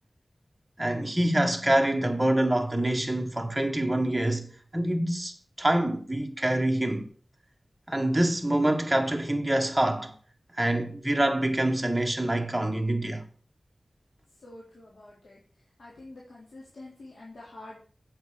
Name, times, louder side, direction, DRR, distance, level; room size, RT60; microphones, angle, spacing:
voice 1, 0.8-4.5 4.7-7.1 7.9-10.1 10.5-13.2, right 1 dB, 15° right, 1.7 m, -26 dB
voice 2, 14.4-15.4 15.8-17.8, left 2 dB, 85° left, 3.6 m, -47 dB
8.8 x 7.9 x 6.5 m
wide cardioid pair, 80°, 0 cm